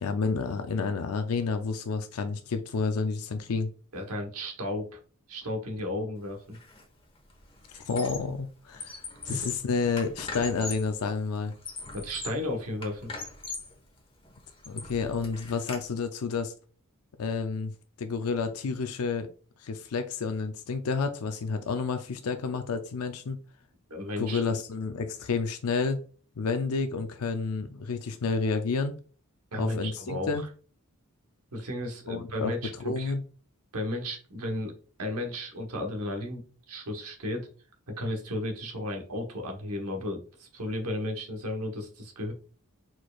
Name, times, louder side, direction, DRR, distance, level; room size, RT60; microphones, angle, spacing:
voice 1, 0.0-3.7 7.7-9.0 9.2-11.5 14.7-16.5 17.2-17.7 18.0-19.3 19.6-23.4 24.2-26.0 26.4-28.9 29.6-30.4 32.1-32.5 32.8-33.2, left 4 dB, 75° left, 7 dB, 0.5 m, -30 dB
voice 2, 3.9-5.0 5.3-6.6 9.3-9.5 11.9-13.1 23.9-24.4 29.5-30.3 31.5-33.1 33.7-34.7 35.0-37.5 37.9-42.3, left 1 dB, 85° right, 3 dB, 1.2 m, -34 dB
Squeak, 6.5-6.8 7.1-8.4 8.7-10.9 11.4-12.5 12.8-13.8 14.2-15.8, left 3 dB, 25° left, 1.2 m, -40 dB
4.5 x 4.5 x 2.4 m, 0.39 s
head